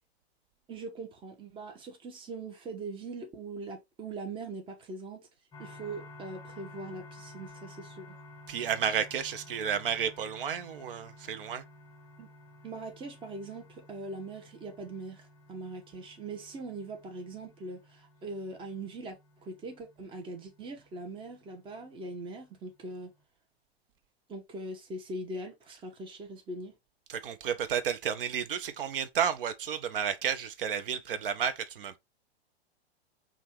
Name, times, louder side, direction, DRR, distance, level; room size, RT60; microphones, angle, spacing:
voice 1, 0.7-5.3 5.6-8.1 12.2-12.3 12.6-23.1 24.3-26.7, right 2 dB, 15° right, 0.9 m, -41 dB
sound 1, 5.5-23.2, left 1 dB, 10° left, 0.9 m, -53 dB
voice 2, 8.5-11.6 27.1-32.0, right 8 dB, 55° right, 0.6 m, -32 dB
5.2 x 2.5 x 3.1 m
figure-of-eight pair, 110°, 33 cm